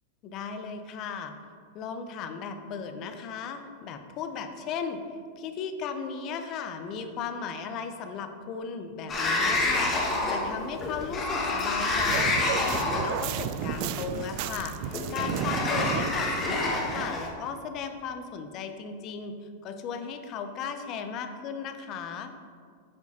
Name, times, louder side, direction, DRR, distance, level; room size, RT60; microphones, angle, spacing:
voice 1, 0.2-1.3 1.7-5.0 5.4-19.3 19.6-22.3, left 6 dB, 40° left, 7 dB, 0.7 m, -36 dB
Sliding door, 9.1-17.3, left 2 dB, 25° left, 1.3 m, -28 dB
sound 1, 12.0-17.1, right 10 dB, 55° right, 0.3 m, -33 dB
8.3 x 4.9 x 4.2 m, 2.1 s
hypercardioid pair, 125°, 0 cm